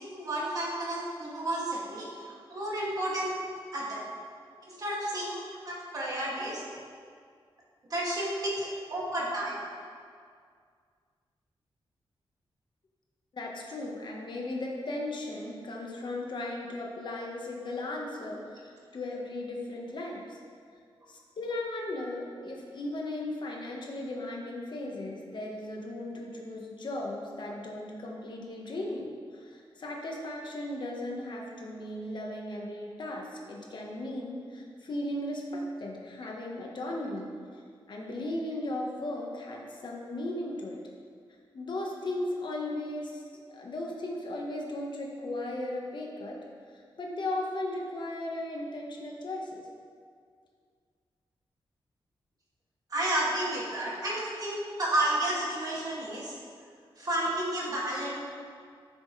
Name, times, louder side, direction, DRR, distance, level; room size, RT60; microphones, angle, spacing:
voice 1, 0.1-4.1 4.7-6.6 7.9-9.6 52.9-56.3 57.0-58.2, right 1 dB, 40° right, -6 dB, 2.3 m, -31 dB
voice 2, 13.3-20.4 21.1-35.4 35.8-37.3 37.9-40.8 41.5-43.2 43.5-46.4 47.0-49.7, left 1 dB, 55° left, -1 dB, 1.3 m, -36 dB
12.5 x 6.6 x 3.3 m, 2.1 s
wide cardioid pair, 130°, 9 cm